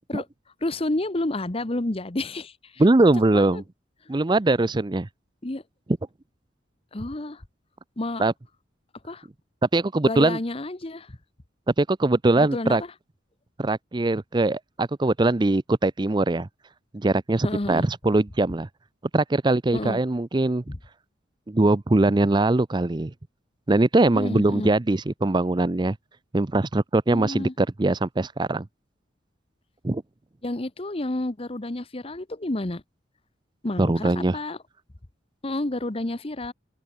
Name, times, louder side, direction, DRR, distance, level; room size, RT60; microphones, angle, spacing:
voice 1, 0.6-2.8 3.3-3.6 5.4-5.6 6.9-7.4 8.0-8.3 9.0-9.3 10.0-11.2 12.4-12.8 17.4-17.9 19.7-20.0 20.7-20.8 24.1-24.7 27.1-27.5 30.4-32.8 33.6-34.6 35.4-36.5, left 2 dB, 30° left, 1.0 m, -30 dB
voice 2, 2.8-3.6 4.1-5.1 8.2-8.3 9.7-10.4 11.8-12.8 13.6-16.5 16.9-18.7 19.1-20.6 21.5-23.1 23.7-26.0 26.3-28.7 29.8-30.0 33.8-34.4, right 2 dB, 25° right, 0.5 m, -21 dB
open air
head